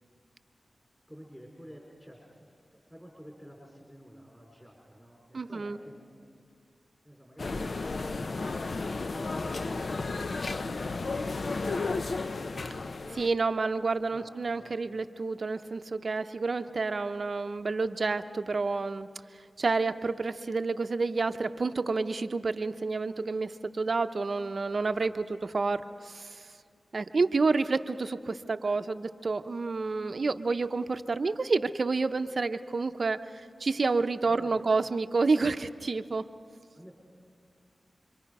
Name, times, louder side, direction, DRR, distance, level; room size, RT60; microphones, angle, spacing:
voice 1, 1.1-6.4 7.0-12.9 14.1-14.8 25.0-25.1 34.2-34.6 36.7-36.9, equal, 5° left, -2 dB, 4.7 m, -52 dB
voice 2, 5.3-5.8 13.1-26.5 26.9-36.3, right 4 dB, 60° right, 9 dB, 0.7 m, -29 dB
sound 1, 7.4-13.3, left 3 dB, 60° left, 0.7 m, -33 dB
28.5 x 23.5 x 5.4 m, 2.2 s
cardioid pair, 45°, 0 cm